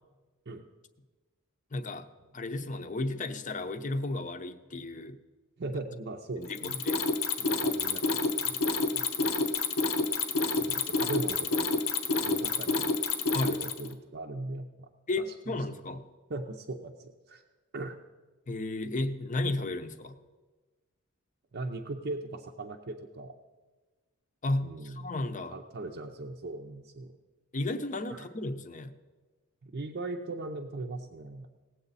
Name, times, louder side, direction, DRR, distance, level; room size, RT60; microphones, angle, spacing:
voice 1, 1.7-2.1 2.3-5.2 6.4-7.0 13.3-13.6 15.1-16.0 18.5-20.2 24.4-25.6 27.5-28.9, left 2 dB, 40° left, 9 dB, 0.7 m, -33 dB
voice 2, 5.6-6.8 7.4-8.6 8.9-9.4 10.5-11.8 12.2-12.9 13.4-14.9 16.3-17.4 17.7-18.0 21.5-23.4 24.6-25.1 25.5-27.1 28.1-28.3 29.6-31.5, right 2 dB, 55° right, 1 dB, 0.6 m, -39 dB
Mechanisms, 6.5-13.9, left 4 dB, 90° left, 0.9 m, -28 dB
18.5 x 8.0 x 4.1 m, 1.3 s
head